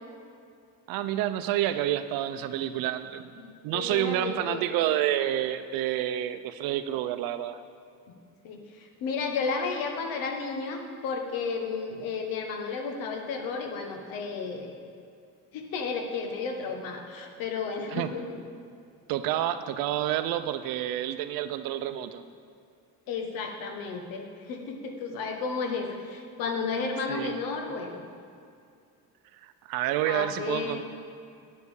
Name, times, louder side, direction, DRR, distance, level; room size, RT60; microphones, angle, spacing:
voice 1, 0.9-7.6 17.9-18.1 19.1-22.2 27.1-27.3 29.4-30.8, right 12 dB, 90° right, 11 dB, 0.6 m, -29 dB
voice 2, 3.4-4.6 8.4-14.7 15.5-18.4 22.0-22.1 23.1-28.0 30.1-30.8, left 4 dB, 80° left, 3 dB, 1.3 m, -33 dB
9.3 x 5.4 x 6.4 m, 2.4 s
cardioid pair, 155°, 34 cm